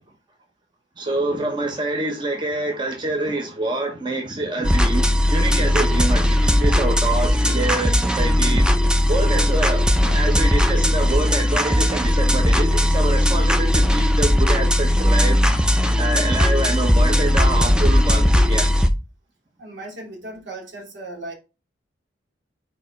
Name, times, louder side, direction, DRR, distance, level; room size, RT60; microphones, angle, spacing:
voice 1, 1.0-8.8 9.1-15.4 16.0-18.7, right 2 dB, 25° right, 1.0 m, -26 dB
sound 1, 4.6-18.9, left 1 dB, 5° right, 0.5 m, -18 dB
voice 2, 19.6-21.3, right 1 dB, 80° right, 2.7 m, -36 dB
4.8 x 4.6 x 5.2 m
head